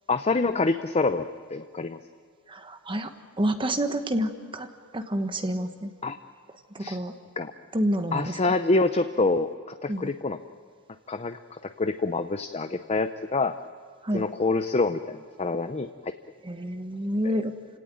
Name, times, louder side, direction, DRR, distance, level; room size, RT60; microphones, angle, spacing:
voice 1, 0.1-2.0 6.0-6.2 6.8-7.0 7.4-7.5 8.1-10.4 11.1-13.5 14.1-16.1 17.2-17.3, left 3 dB, 30° left, 9 dB, 0.7 m, -26 dB
voice 2, 2.5-3.1 3.4-4.7 4.9-5.9 6.7-7.1 7.7-8.3 9.9-10.1 14.0-14.2 16.4-17.5, equal, 25° right, 7 dB, 1.2 m, -28 dB
29.0 x 17.5 x 9.2 m, 2.1 s
head